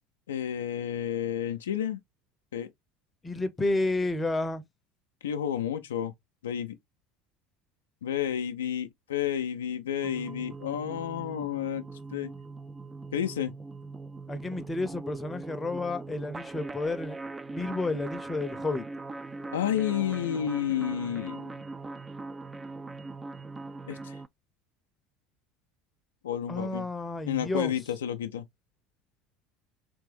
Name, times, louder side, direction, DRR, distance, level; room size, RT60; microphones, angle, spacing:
voice 1, 0.3-2.0 2.5-2.7 5.2-6.1 6.4-6.8 8.0-11.8 12.1-12.3 13.1-13.5 19.5-21.5 23.9-24.2 26.2-26.9 27.3-28.5, left 10 dB, 70° left, 0.4 m, -31 dB
voice 2, 3.2-4.6 14.3-17.2 17.5-18.9 26.5-27.7, left 2 dB, 20° left, 0.7 m, -31 dB
sound 1, 10.0-24.3, right 3 dB, 20° right, 0.3 m, -41 dB
3.4 x 3.3 x 3.2 m
figure-of-eight pair, 65°, 0 cm